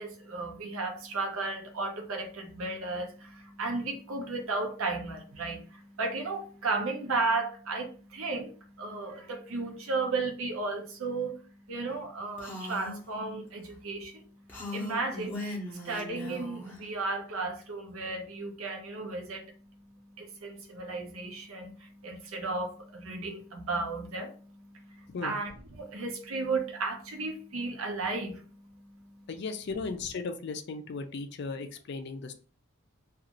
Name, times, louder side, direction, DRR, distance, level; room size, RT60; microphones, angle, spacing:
voice 1, 0.0-11.4 11.7-14.3 14.7-15.4 15.7-19.5 20.2-29.2, right 3 dB, 70° right, 0.6 m, -34 dB
Female speech woman speaking, 12.4-13.0 14.5-16.8, left 2 dB, 10° left, 0.7 m, -39 dB
voice 2, 29.3-32.3, left 4 dB, 50° left, 0.4 m, -36 dB
2.5 x 2.4 x 2.9 m
head